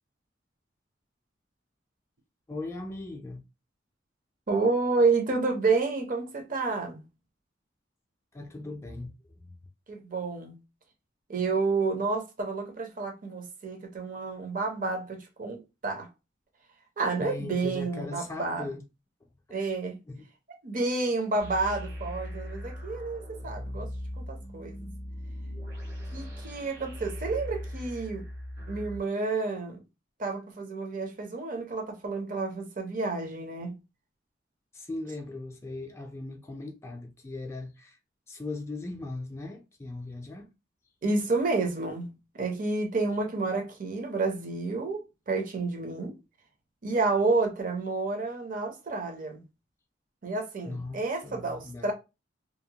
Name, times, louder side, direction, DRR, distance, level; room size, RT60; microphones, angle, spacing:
voice 1, 2.5-3.4 8.3-9.6 17.2-18.8 19.5-19.6 20.1-20.3 34.7-38.0 38.3-40.5 50.7-51.0 51.2-51.9, left 2 dB, 15° left, 0.4 m, -38 dB
voice 2, 4.5-7.0 9.9-10.6 11.3-16.1 17.0-18.7 19.5-20.0 20.6-23.9 24.2-24.9 26.1-28.2 28.7-29.8 30.2-33.7 41.0-46.2 46.8-49.4 50.2-51.9, right 3 dB, 45° right, 0.7 m, -30 dB
sound 1, 21.4-29.0, equal, 75° right, 1.4 m, -39 dB
2.8 x 2.1 x 2.8 m
head